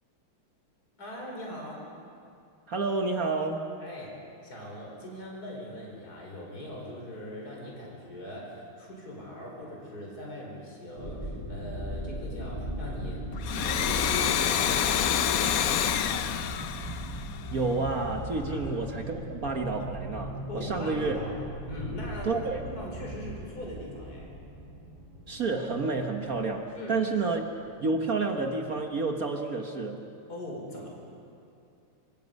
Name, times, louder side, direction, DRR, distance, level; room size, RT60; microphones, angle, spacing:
voice 1, 1.0-1.8 3.8-4.1 4.4-16.2 18.5-18.7 20.5-21.4 21.7-24.3 26.8-27.0 30.3-30.9, equal, 45° left, -2 dB, 5.2 m, -41 dB
voice 2, 2.7-3.7 17.5-21.1 22.2-22.6 25.3-27.5 27.8-30.0, right 3 dB, 45° right, 4 dB, 1.4 m, -30 dB
sound 1, 11.0-28.3 28.7-28.8, equal, 65° right, 5.7 m, -38 dB
Domestic sounds home sounds, 13.3-17.8, left 9 dB, 75° left, 0.8 m, -27 dB
26.5 x 25.5 x 5.4 m, 2.5 s
omnidirectional pair, 2.4 m